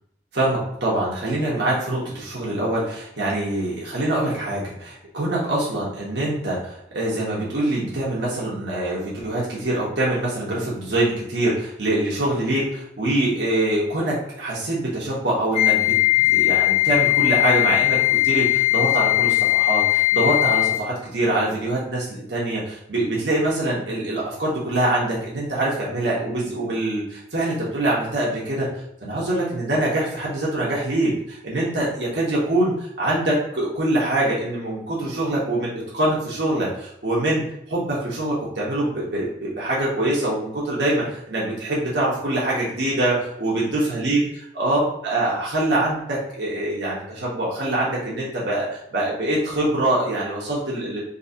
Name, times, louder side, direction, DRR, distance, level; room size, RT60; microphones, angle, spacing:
voice 1, 0.3-28.7 29.0-51.0, right 1 dB, 80° right, -5 dB, 1.2 m, -24 dB
Wind instrument woodwind instrument, 15.5-20.9, left 19 dB, 35° left, 0.4 m, -19 dB
3.9 x 2.9 x 2.8 m, 0.75 s
head